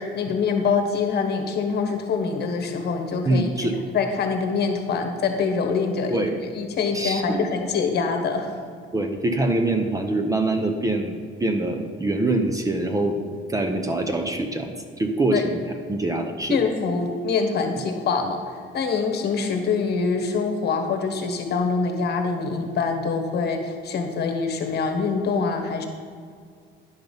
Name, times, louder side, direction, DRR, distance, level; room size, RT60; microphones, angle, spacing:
voice 1, 0.0-3.5 3.9-6.2 6.6-8.5 15.3-15.4 16.5-25.8, left 5 dB, 50° left, 5 dB, 1.3 m, -24 dB
voice 2, 3.2-3.8 6.1-6.4 6.9-7.5 8.9-13.2 13.5-15.6 15.9-16.6, right 2 dB, 15° right, 5 dB, 0.7 m, -24 dB
10.5 x 6.0 x 5.3 m, 2.1 s
cardioid pair, 130°, 21 cm